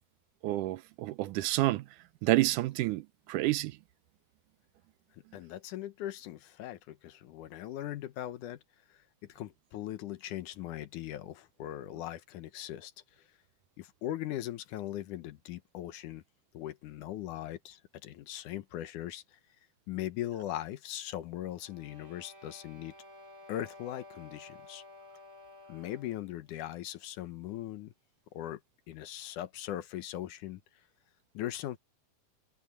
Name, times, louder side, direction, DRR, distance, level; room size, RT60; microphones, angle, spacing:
voice 1, 0.4-1.9 2.2-3.8, right 17 dB, 85° right, 2.2 m, -29 dB
voice 2, 5.3-8.6 8.9-9.0 9.3-12.9 13.8-16.2 16.5-19.4 19.9-22.9 23.5-24.8 25.7-27.9 28.3-28.6 28.9-30.6 31.3-31.8, left 13 dB, 75° left, 2.5 m, -39 dB
sound 1, 21.5-26.3, left 2 dB, 20° right, 6.7 m, -53 dB
omnidirectional pair, 3.7 m